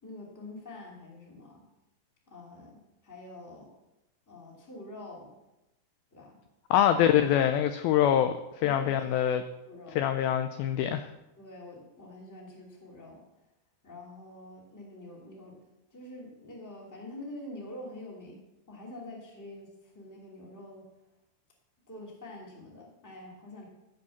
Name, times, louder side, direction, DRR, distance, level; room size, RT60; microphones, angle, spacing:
voice 1, 0.0-1.6 2.3-3.7 4.3-5.3 6.1-6.4 8.6-9.3 9.6-10.0 11.4-13.2 13.8-15.6 15.9-18.4 18.7-20.9 21.9-23.7, left 1 dB, 5° left, -2 dB, 1.5 m, -46 dB
voice 2, 6.7-8.3 8.6-9.4 10.0-11.1, left 10 dB, 85° left, 9 dB, 2.1 m, -24 dB
14.5 x 5.3 x 7.1 m, 0.95 s
omnidirectional pair, 4.9 m